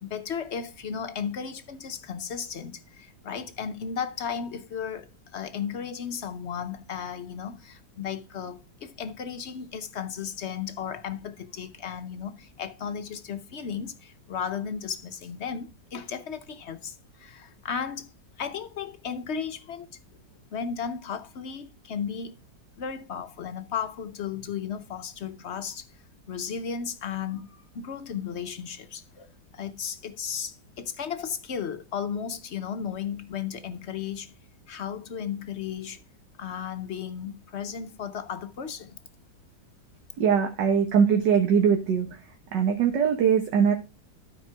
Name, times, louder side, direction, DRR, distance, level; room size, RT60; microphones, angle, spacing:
voice 1, 0.0-18.1 18.4-19.9 20.5-22.4 22.8-25.9 26.3-29.3 29.5-34.3 34.7-36.0 36.4-39.0, left 7 dB, 55° left, 0.7 m, -35 dB
voice 2, 40.2-42.1 42.5-43.7, right 7 dB, 75° right, 1.7 m, -21 dB
12.5 x 4.4 x 4.5 m
omnidirectional pair, 1.9 m